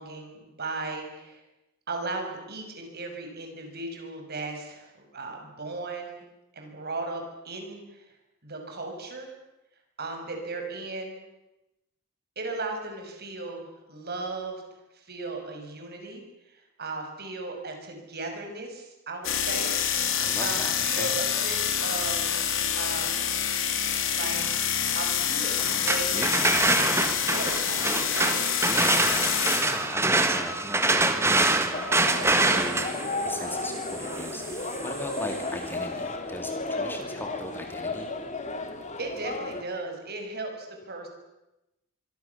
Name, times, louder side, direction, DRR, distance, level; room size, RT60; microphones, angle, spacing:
voice 1, 0.0-1.4 1.9-6.2 6.5-8.1 8.4-9.3 10.0-11.2 12.4-14.6 14.9-19.7 20.4-23.2 24.1-24.4 24.9-26.3 26.7-28.4 39.0-41.1, right 3 dB, 45° right, 3 dB, 6.1 m, -36 dB
sound 1, 19.2-29.8, left 8 dB, 65° left, 3.4 m, -27 dB
voice 2, 20.2-21.1 26.1-26.8 28.7-38.1, left 1 dB, 10° left, 5 dB, 2.2 m, -38 dB
sound 2, 25.6-35.4, right 2 dB, 10° right, 1.7 m, -26 dB
sound 3, 31.7-39.6, left 2 dB, 35° left, 2.6 m, -33 dB
25.0 x 23.5 x 7.1 m, 0.95 s
head